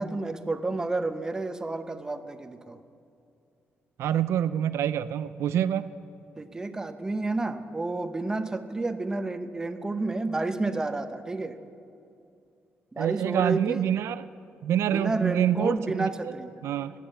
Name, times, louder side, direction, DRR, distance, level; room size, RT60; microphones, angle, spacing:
voice 1, 0.0-2.8 6.4-11.6 12.9-13.8 14.9-16.5, right 2 dB, 15° right, 9 dB, 0.7 m, -30 dB
voice 2, 4.0-5.9 13.0-14.2 14.6-16.3 16.6-16.9, right 10 dB, 90° right, 14 dB, 0.4 m, -26 dB
16.5 x 10.0 x 7.9 m, 2.6 s
wide cardioid pair, 175°, 5 cm